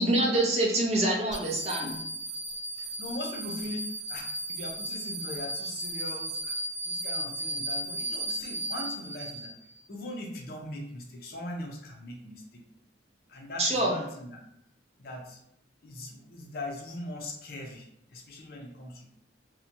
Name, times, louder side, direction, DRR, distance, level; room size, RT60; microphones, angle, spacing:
voice 1, 0.0-2.0 13.6-14.0, right 1 dB, 35° right, -2 dB, 0.6 m, -25 dB
sound 1, 1.3-9.8, right 1 dB, 15° left, 1.2 m, -35 dB
voice 2, 2.7-6.6 6.8-9.5 9.9-12.6 13.3-14.4 15.0-15.4 15.8-19.1, left 1 dB, 50° left, 1 dB, 0.5 m, -40 dB
2.7 x 2.1 x 2.7 m, 0.73 s
head